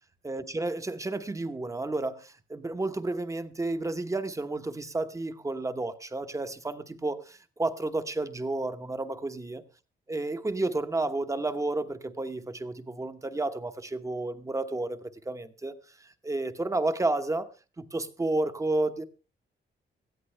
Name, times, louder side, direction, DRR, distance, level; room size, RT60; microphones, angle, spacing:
voice 1, 0.2-9.6 10.1-15.7 16.0-17.5 17.8-19.0, right 2 dB, 15° right, 1.0 m, -31 dB
18.5 x 14.0 x 3.3 m
wide cardioid pair, 160°, 19 cm